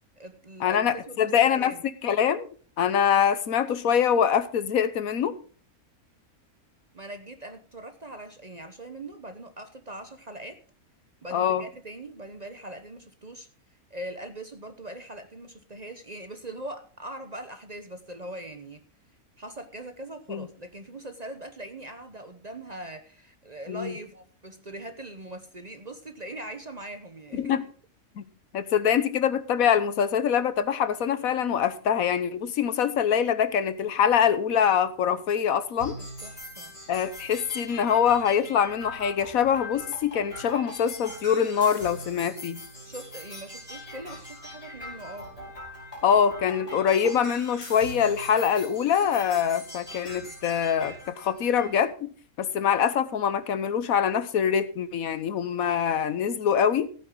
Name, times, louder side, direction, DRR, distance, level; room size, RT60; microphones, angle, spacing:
voice 1, 0.0-1.8 6.9-10.6 11.2-13.5 13.9-18.8 19.4-27.6 36.2-36.7 42.8-45.3, right 1 dB, 35° right, 8 dB, 0.9 m, -41 dB
voice 2, 0.6-1.7 2.0-2.5 2.8-5.4 11.3-11.6 20.3-20.5 23.7-23.9 27.4-27.6 28.2-28.3 28.5-36.0 36.9-42.6 46.0-56.9, left 8 dB, 70° left, 13 dB, 1.3 m, -24 dB
sound 1, 35.8-51.8, left 1 dB, 25° left, 5.1 m, -42 dB
15.5 x 9.1 x 3.7 m, 0.40 s
omnidirectional pair, 1.6 m